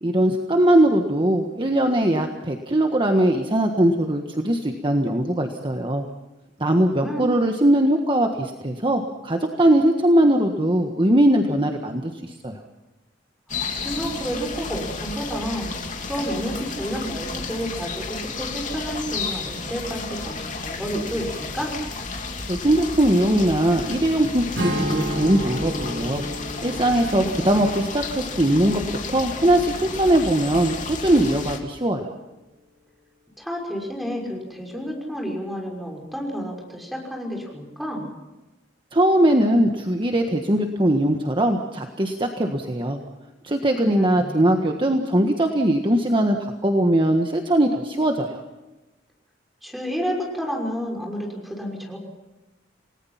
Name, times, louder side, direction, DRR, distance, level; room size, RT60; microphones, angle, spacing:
voice 1, 0.0-6.0 6.6-12.6 22.5-26.2 26.6-28.8 29.1-32.1 38.9-43.0 43.4-48.4, right 1 dB, 25° right, 4 dB, 1.5 m, -20 dB
voice 2, 6.8-7.3 13.8-15.7 16.1-21.7 27.0-27.6 33.4-38.1 43.8-44.5 49.6-52.0, equal, ahead, 0 dB, 6.0 m, -30 dB
sound 1, 13.5-31.6, left 4 dB, 45° left, 2.9 m, -32 dB
Strum, 24.6-29.9, equal, 70° right, 3.7 m, -32 dB
29.5 x 19.5 x 5.8 m, 1.1 s
head